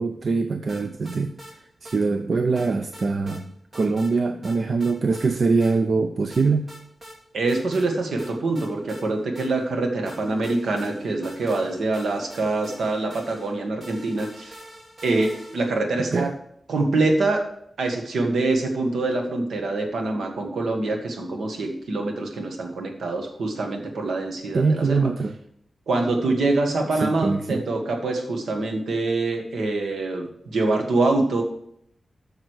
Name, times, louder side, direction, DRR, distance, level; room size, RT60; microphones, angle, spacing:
voice 1, 0.0-6.7 16.1-16.3 24.5-25.4 26.9-27.6, right 4 dB, 60° right, 8 dB, 0.5 m, -23 dB
sound 1, 0.7-1.5 1.9-2.0 2.6-3.4 3.7-4.1 4.4-5.3 5.6-5.7 6.3-7.2 7.5-7.9 8.2-9.7 10.1-15.8, equal, 40° right, 2.6 m, -45 dB
voice 2, 7.3-14.6 15.0-16.3 16.7-17.4 17.8-25.1 25.9-31.4, right 2 dB, 85° right, 3 dB, 1.7 m, -25 dB
7.9 x 6.5 x 6.4 m, 0.72 s
wide cardioid pair, 90°, 0 cm